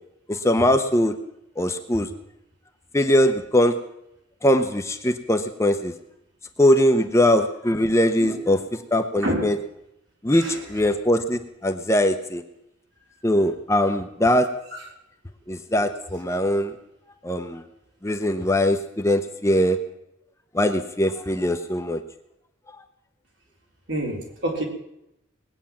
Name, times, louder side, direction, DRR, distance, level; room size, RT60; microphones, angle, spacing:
voice 1, 0.3-1.1 1.6-2.1 2.9-3.8 4.4-5.9 6.6-9.6 10.2-12.4 13.2-14.5 15.5-16.7 17.2-17.6 18.0-19.8 20.5-22.0, left 1 dB, 15° left, 6 dB, 0.8 m, -21 dB
voice 2, 23.9-24.6, right 1 dB, 65° right, 0 dB, 3.9 m, -27 dB
20.0 x 9.0 x 7.3 m, 0.83 s
head